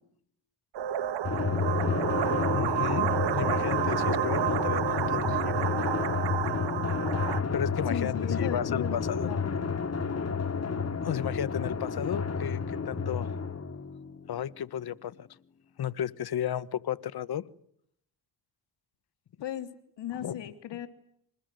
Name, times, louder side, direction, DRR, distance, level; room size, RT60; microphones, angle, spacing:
sound 1, 0.7-7.4, right 11 dB, 75° right, 1.6 m, -30 dB
Drum, 1.2-14.3, left 5 dB, 35° left, 2.3 m, -30 dB
voice 1, 2.5-5.7 6.8-7.0 7.2-9.3 11.0-13.3 14.3-15.3 15.8-17.4 20.2-20.4 20.7-20.8, left 10 dB, 60° left, 18 dB, 1.4 m, -34 dB
voice 2, 7.9-9.7 19.4-19.7 20.0-20.9, left 11 dB, 80° left, 9 dB, 3.1 m, -36 dB
26.5 x 21.0 x 9.3 m, 0.71 s
cardioid pair, 85°, 42 cm